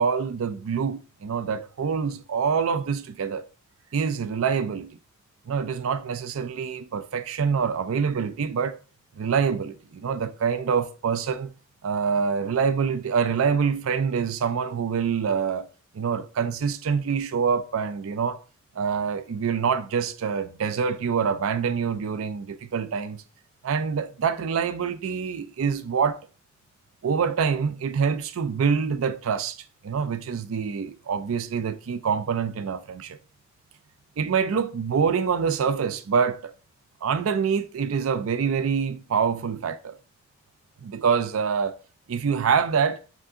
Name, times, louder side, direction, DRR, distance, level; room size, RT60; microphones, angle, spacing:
voice 1, 0.0-3.5 3.9-4.9 5.5-8.8 9.2-11.5 11.8-15.7 15.9-18.4 18.8-23.2 23.6-26.2 27.0-33.2 34.2-36.5 37.0-40.0 40.8-41.8 42.1-43.0, right 6 dB, 90° right, 0.4 m, -25 dB
4.9 x 2.6 x 3.7 m
head